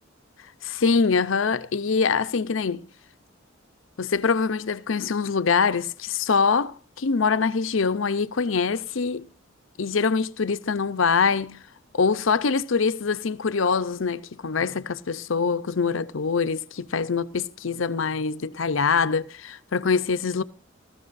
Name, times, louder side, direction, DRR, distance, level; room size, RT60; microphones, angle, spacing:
voice 1, 0.6-2.9 4.0-9.3 9.8-11.6 11.9-20.4, left 5 dB, 75° left, 0.6 m, -24 dB
18.5 x 14.0 x 2.6 m
head